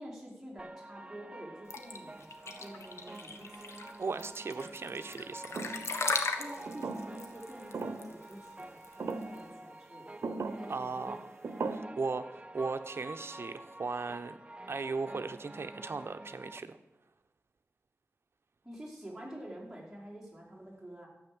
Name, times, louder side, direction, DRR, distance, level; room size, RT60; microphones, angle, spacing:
voice 1, 0.0-3.7 6.4-10.1 10.4-11.2 18.6-21.1, right 1 dB, 5° right, -5 dB, 5.0 m, -48 dB
sound 1, 0.6-16.6, right 2 dB, 25° right, 0.7 m, -48 dB
sound 2, 1.7-9.4, left 4 dB, 85° left, 1.4 m, -37 dB
voice 2, 4.0-5.6 10.7-11.3 11.7-14.4 14.7-16.8, right 4 dB, 60° right, 9 dB, 1.0 m, -37 dB
sound 3, 5.6-5.9 6.7-7.3 7.7-8.1 9.0-9.4 10.2-10.7 11.4-11.8, right 4 dB, 85° right, 0.9 m, -37 dB
13.0 x 8.9 x 7.8 m, 0.95 s
wide cardioid pair, 105°, 5 cm